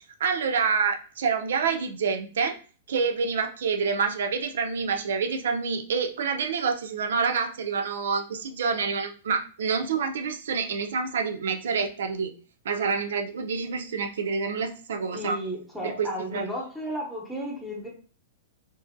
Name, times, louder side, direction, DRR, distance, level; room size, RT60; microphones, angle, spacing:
voice 1, 0.2-2.6 2.9-12.3 12.6-15.4 15.8-16.4, right 5 dB, 80° right, 5 dB, 0.4 m, -27 dB
voice 2, 15.1-17.9, equal, ahead, -3 dB, 0.8 m, -33 dB
2.6 x 2.5 x 2.5 m, 0.40 s
hypercardioid pair, 130°, 0 cm